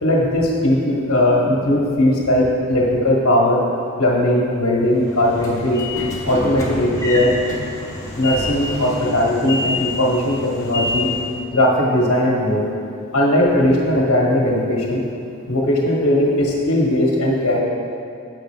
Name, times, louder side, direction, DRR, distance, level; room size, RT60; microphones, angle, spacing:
voice 1, 0.0-3.6 4.0-5.9 6.2-7.3 8.2-11.1 11.5-12.6 13.1-15.0 15.5-17.6, left 1 dB, 70° left, -3 dB, 1.4 m, -18 dB
Train / Sliding door, 4.9-11.4, left 2 dB, 15° left, 0.9 m, -27 dB
7.5 x 6.4 x 3.3 m, 2.5 s
head